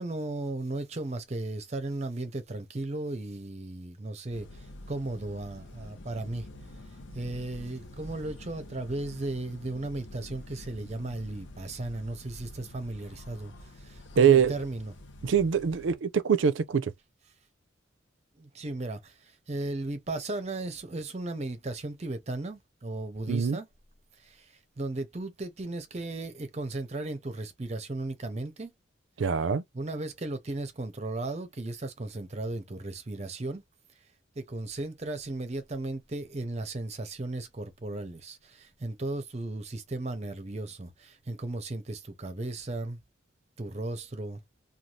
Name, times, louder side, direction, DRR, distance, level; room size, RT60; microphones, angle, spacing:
voice 1, 0.0-6.5 7.1-14.9 18.4-23.7 24.2-28.7 29.7-33.6 34.4-43.0 43.6-44.4, right 2 dB, 35° right, 0.6 m, -36 dB
sound 1, 4.3-15.9, left 1 dB, 75° left, 0.7 m, -47 dB
voice 2, 14.2-14.5 15.2-16.9 23.3-23.6 29.2-29.6, right 7 dB, 75° right, 0.4 m, -23 dB
2.6 x 2.3 x 3.0 m
head